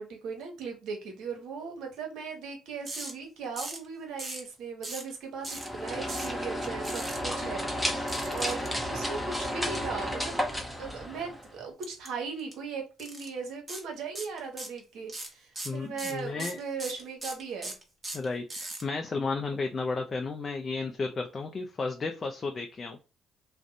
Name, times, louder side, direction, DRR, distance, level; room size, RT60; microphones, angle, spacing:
voice 1, 0.0-8.6 8.9-10.5 10.8-17.8, right 5 dB, 75° right, 0.9 m, -38 dB
sound 1, 2.9-3.1 3.6-3.9 4.2-4.5 4.8-5.1 5.4-5.7 6.1-6.3 6.8-7.2 8.1-8.7 11.8-12.1 12.4-12.5 13.0-13.3 13.7-13.8 14.1-14.8 15.1-18.8, right 2 dB, 25° right, 1.1 m, -38 dB
sound 2, 5.4-11.6, equal, ahead, 0.7 m, -32 dB
voice 2, 15.6-16.6 18.1-23.0, left 3 dB, 40° left, 0.4 m, -33 dB
2.5 x 2.1 x 2.7 m
supercardioid pair, 65°, 0 cm